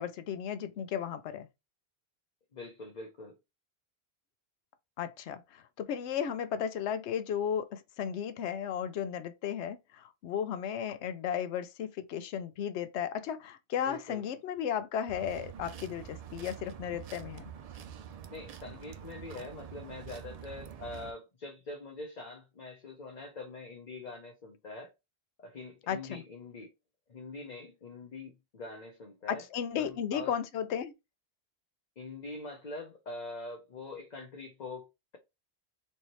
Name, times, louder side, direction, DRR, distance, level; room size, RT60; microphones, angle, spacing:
voice 1, 0.0-1.5 5.0-17.4 25.9-26.2 29.3-30.9, left 8 dB, 90° left, 0.9 m, -35 dB
voice 2, 2.5-3.4 13.9-14.2 18.3-24.9 25.4-26.7 27.1-29.5 29.8-30.4 32.0-35.2, left 3 dB, 45° left, 0.8 m, -44 dB
sound 1, 15.1-21.1, right 9 dB, 55° right, 0.4 m, -46 dB
4.3 x 2.7 x 3.0 m
omnidirectional pair, 1.1 m